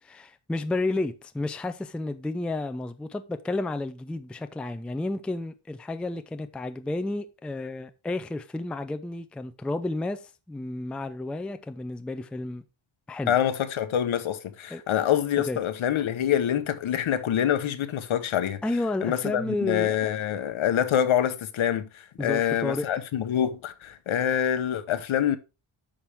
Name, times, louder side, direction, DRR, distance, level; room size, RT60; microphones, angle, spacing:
voice 1, 0.0-10.2 10.5-12.6 13.1-13.3 14.7-14.8 15.5-15.6 18.6-20.0 22.2-22.8, left 2 dB, ahead, 0.4 m, -31 dB
voice 2, 13.3-18.6 19.0-25.4, left 10 dB, 75° left, 1.1 m, -26 dB
8.9 x 5.9 x 3.5 m
wide cardioid pair, 145°, 48 cm